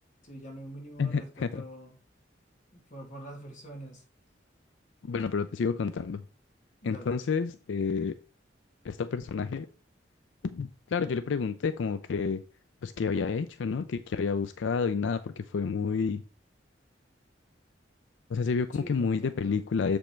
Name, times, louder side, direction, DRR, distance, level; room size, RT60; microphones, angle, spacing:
voice 1, 0.2-1.9 2.7-4.0 6.8-7.2 18.7-19.6, right 1 dB, 45° left, 2.3 m, -45 dB
voice 2, 1.0-1.6 5.0-6.2 6.8-8.2 8.8-9.7 10.4-12.4 12.8-16.2 18.3-20.0, left 5 dB, 85° left, 0.4 m, -29 dB
7.2 x 5.2 x 4.4 m
head